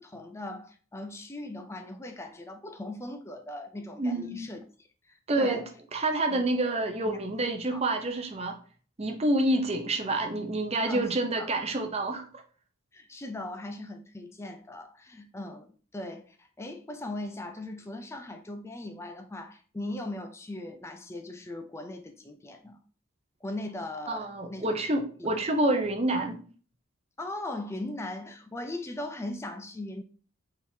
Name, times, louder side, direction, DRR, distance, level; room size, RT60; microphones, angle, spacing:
voice 1, 0.0-4.6 5.1-5.7 6.3-6.4 7.1-7.2 7.7-7.9 10.9-11.1 11.4-11.6 12.9-22.8 23.4-24.8 27.2-30.0, left 1 dB, 15° left, 0.4 m, -39 dB
voice 2, 4.0-4.5 5.3-5.6 5.9-8.6 9.0-12.3 24.1-26.4, right 2 dB, 30° right, 0.7 m, -28 dB
4.5 x 3.6 x 2.7 m
head